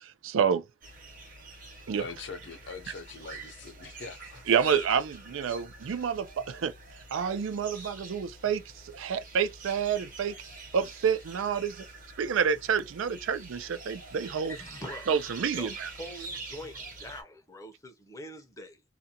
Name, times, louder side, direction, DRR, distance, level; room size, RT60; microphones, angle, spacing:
voice 1, 0.0-0.6 1.9-2.1 4.5-6.7 7.1-10.4 10.7-11.8 12.2-14.6 15.1-15.9, right 7 dB, 75° right, 0.4 m, -28 dB
sound 1, 0.8-17.2, right 3 dB, 40° right, 0.9 m, -46 dB
voice 2, 2.0-4.5, left 4 dB, 60° left, 0.6 m, -43 dB
voice 3, 14.5-15.1 15.5-18.8, left 1 dB, 15° left, 0.6 m, -44 dB
2.5 x 2.2 x 2.7 m
head